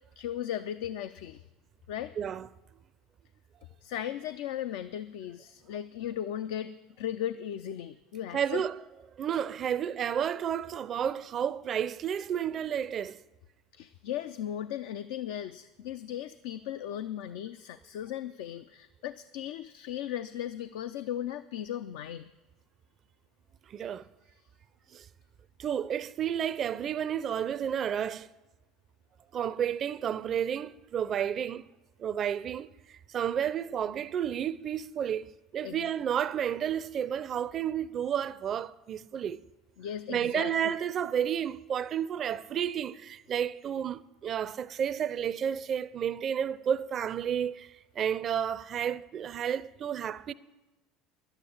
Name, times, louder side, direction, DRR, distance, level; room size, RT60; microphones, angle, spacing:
voice 1, 0.2-1.4 1.9-2.1 3.8-8.6 13.7-22.3 35.6-35.9 39.8-40.7, left 10 dB, 75° left, 0.4 m, -37 dB
voice 2, 2.2-2.5 8.3-8.8 9.2-13.2 23.7-24.0 24.9-25.1 25.6-28.3 29.3-31.7 32.0-39.4 40.1-50.3, right 9 dB, 45° right, 0.4 m, -31 dB
11.5 x 8.8 x 9.6 m
hypercardioid pair, 85°, 0 cm